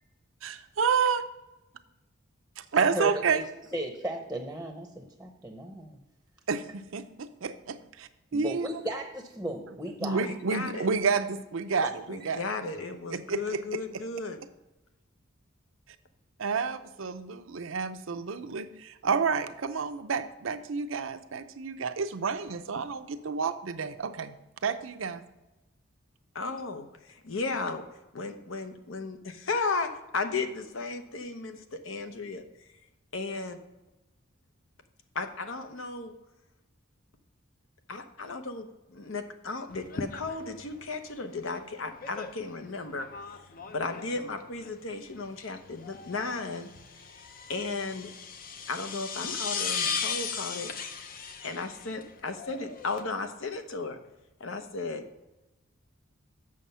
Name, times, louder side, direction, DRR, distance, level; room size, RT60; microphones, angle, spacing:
voice 1, 0.4-1.2 2.6-3.4 6.5-8.7 10.0-12.4 13.1-14.0 16.4-24.3 24.6-25.2, right 5 dB, 70° right, 10 dB, 0.6 m, -30 dB
voice 2, 2.7-3.4 3.7-6.0 8.3-10.2 11.8-11.9 12.2-12.3, right 1 dB, 5° right, 3 dB, 0.8 m, -35 dB
voice 3, 10.2-10.9 12.1-14.4 26.4-27.8 28.1-32.4 33.1-33.6 35.1-36.1 37.9-43.1 43.7-46.7 47.1-47.2 47.5-48.1 48.7-54.0 54.4-55.1, left 3 dB, 75° left, 7 dB, 0.9 m, -35 dB
sound 1, 39.7-53.0, left 6 dB, 45° left, 0.6 m, -38 dB
7.6 x 6.4 x 5.5 m, 1.0 s
head